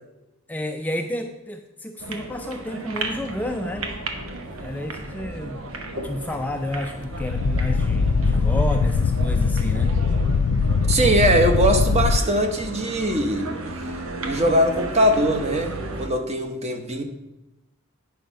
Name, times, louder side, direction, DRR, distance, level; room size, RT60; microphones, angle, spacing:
voice 1, 0.5-3.9 4.6-10.0, left 1 dB, 10° left, 4 dB, 0.4 m, -31 dB
sound 1, 2.0-16.1, right 2 dB, 90° right, 1.1 m, -34 dB
sound 2, 2.8-15.9, left 1 dB, 70° right, 2.3 m, -45 dB
sound 3, 7.0-12.2, left 4 dB, 80° left, 0.4 m, -21 dB
voice 2, 10.9-13.5 14.2-17.0, right 1 dB, 30° right, 5 dB, 1.0 m, -21 dB
9.3 x 5.5 x 5.2 m, 0.93 s
head